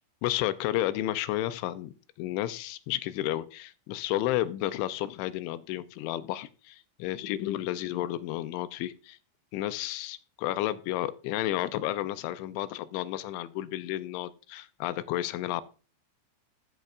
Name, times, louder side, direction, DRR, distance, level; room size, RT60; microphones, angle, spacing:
voice 1, 0.2-9.2 9.5-15.6, left 14 dB, 85° left, 13 dB, 3.0 m, -32 dB
15.0 x 6.7 x 2.4 m, 0.36 s
omnidirectional pair, 5.4 m